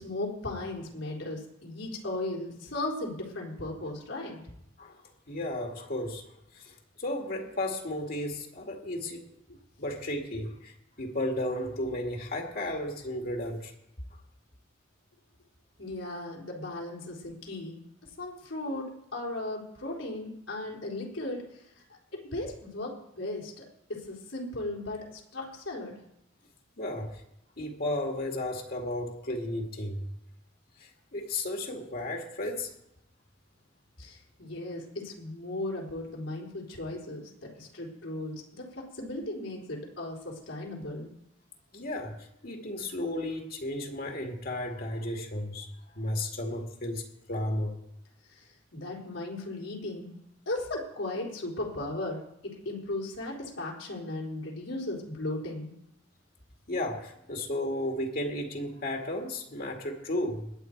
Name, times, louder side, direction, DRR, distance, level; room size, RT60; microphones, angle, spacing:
voice 1, 0.0-4.4 9.5-9.6 15.8-17.8 18.2-21.6 21.9-23.6 23.9-26.0 34.0-41.1 48.3-48.5 48.7-50.1 50.5-55.7, left 2 dB, 80° left, -2 dB, 4.0 m, -36 dB
voice 2, 5.3-9.3 9.8-13.7 26.8-27.2 27.6-30.1 30.8-32.7 41.7-45.7 45.9-47.8 56.7-60.5, left 1 dB, 50° left, 2 dB, 2.1 m, -34 dB
20.5 x 8.7 x 4.6 m, 0.78 s
head